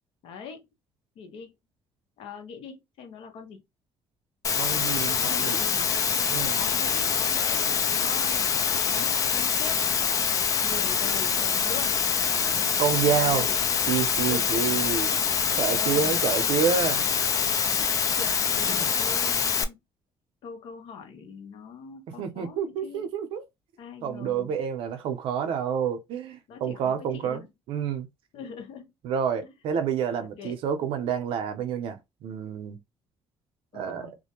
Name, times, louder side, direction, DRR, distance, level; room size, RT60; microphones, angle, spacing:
voice 1, 0.2-0.7 1.2-1.5 2.2-3.6 5.2-6.0 6.5-9.8 10.6-12.0 13.0-13.6 14.3-14.5 15.3-16.1 17.7-19.8 20.4-23.1 23.8-24.5 26.5-27.5 28.3-28.9 29.4-29.5 30.2-30.5 33.7-34.1, left 6 dB, 75° left, 0.8 m, -42 dB
Water, 4.4-19.6, left 7 dB, 35° left, 0.4 m, -25 dB
voice 2, 4.6-5.6 6.3-6.6 12.3-13.5 13.9-15.2 15.6-17.1 18.6-18.9 22.2-23.4 24.0-28.1 29.0-32.8 33.7-34.1, right 7 dB, 75° right, 0.6 m, -28 dB
2.4 x 2.1 x 2.9 m
cardioid pair, 135°, 9 cm